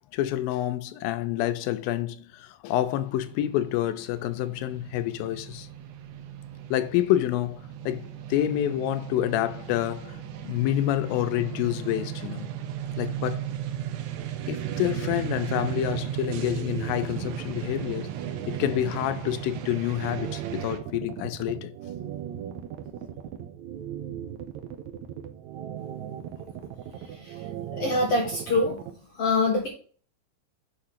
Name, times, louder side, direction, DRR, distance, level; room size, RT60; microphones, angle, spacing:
voice 1, 0.1-5.7 6.7-7.6 7.9-12.5 13.0-13.5 14.5-18.1 18.5-21.7, left 13 dB, 85° left, 2.4 m, -28 dB
sound 1, 2.7-20.8, right 10 dB, 90° right, 1.4 m, -36 dB
sound 2, 14.2-28.9, right 10 dB, 70° right, 1.9 m, -37 dB
voice 2, 27.7-28.7 29.2-29.7, left 2 dB, 65° left, 1.5 m, -24 dB
8.6 x 3.1 x 5.7 m
omnidirectional pair, 4.1 m